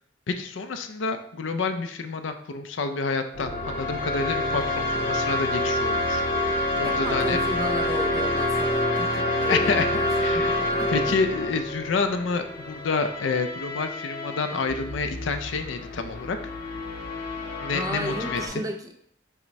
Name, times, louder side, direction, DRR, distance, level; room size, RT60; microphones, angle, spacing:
voice 1, 0.3-7.4 9.1-9.2 9.5-9.8 10.2-10.6 10.9-16.4 17.6-18.6, left 4 dB, 90° left, 7 dB, 0.5 m, -28 dB
sound 1, 3.3-18.5, left 1 dB, 50° left, 0.7 m, -27 dB
voice 2, 6.8-10.9 17.4-18.9, right 1 dB, 20° right, 3 dB, 0.5 m, -34 dB
5.9 x 2.1 x 4.0 m, 0.68 s
head